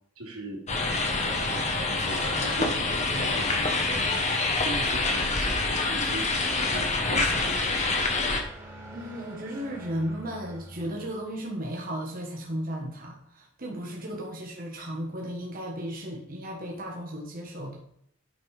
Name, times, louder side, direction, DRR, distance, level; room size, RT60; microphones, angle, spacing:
voice 1, 0.1-0.6 0.9-3.5 4.6-8.0, right 1 dB, 90° right, -1 dB, 3.0 m, -39 dB
sound 1, 0.7-8.4, left 3 dB, 30° left, 1.3 m, -26 dB
sound 2, 6.9-11.4, right 1 dB, 15° right, 2.3 m, -45 dB
voice 2, 8.9-17.8, equal, 40° right, 0 dB, 1.5 m, -35 dB
9.3 x 5.4 x 5.0 m, 0.68 s
head